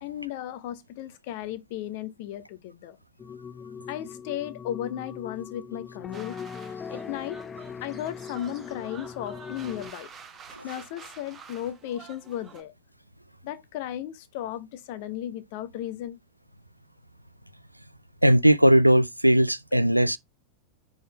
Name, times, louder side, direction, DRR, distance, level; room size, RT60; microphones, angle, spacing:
voice 1, 0.0-3.0 3.9-6.4 6.9-7.4 7.8-10.1 10.6-12.7 13.4-16.2, left 11 dB, 50° left, 0.7 m, -35 dB
sound 1, 3.2-9.9, left 6 dB, 20° left, 0.4 m, -40 dB
sound 2, 6.1-12.6, right 5 dB, 25° right, 1.0 m, -48 dB
voice 2, 18.2-20.2, right 1 dB, 90° right, 0.4 m, -19 dB
5.1 x 3.8 x 5.1 m
figure-of-eight pair, 90°, 0 cm